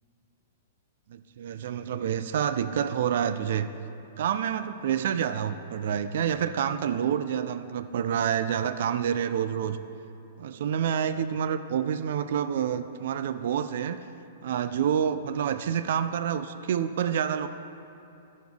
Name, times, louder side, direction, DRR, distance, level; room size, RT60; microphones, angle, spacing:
voice 1, 1.1-3.7 4.2-9.8 10.4-14.0 14.4-17.5, right 8 dB, 60° right, 11 dB, 0.4 m, -28 dB
13.5 x 6.3 x 3.5 m, 2.8 s
hypercardioid pair, 160°, 0 cm